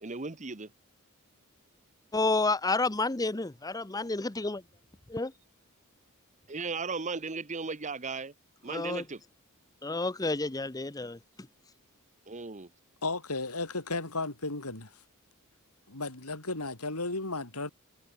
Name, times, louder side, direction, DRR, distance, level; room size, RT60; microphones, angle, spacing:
voice 1, 0.0-0.7 6.5-8.3 8.6-9.2 12.3-12.7, right 4 dB, 35° right, 1.2 m, -36 dB
voice 2, 2.1-4.6 5.1-5.3 8.7-9.1 9.8-11.2, left 3 dB, 15° left, 0.8 m, -30 dB
voice 3, 13.0-14.9 15.9-17.7, left 3 dB, 90° left, 5.8 m, -34 dB
head